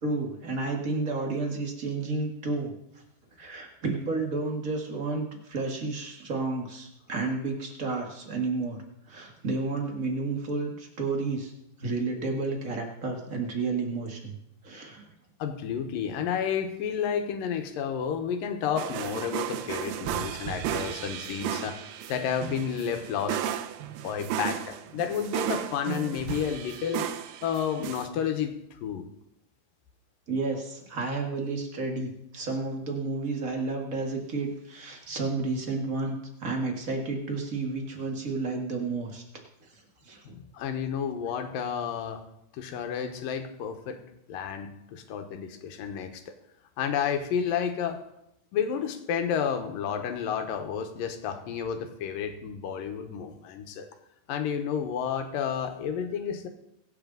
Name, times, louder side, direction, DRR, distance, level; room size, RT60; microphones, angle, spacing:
voice 1, 0.0-2.7 3.4-11.5 11.8-14.4 14.6-15.0 30.3-39.2 40.0-40.2, right 3 dB, 35° right, 2 dB, 1.4 m, -31 dB
voice 2, 15.4-23.4 24.0-27.1 27.4-29.1 40.2-42.2 42.5-44.0 44.3-46.2 46.8-48.0 48.5-53.9 54.3-56.5, left 7 dB, 80° left, 6 dB, 2.8 m, -31 dB
sound 1, 18.8-28.1, right 10 dB, 90° right, 2.5 m, -34 dB
23.5 x 8.2 x 3.9 m, 0.82 s
omnidirectional pair, 4.0 m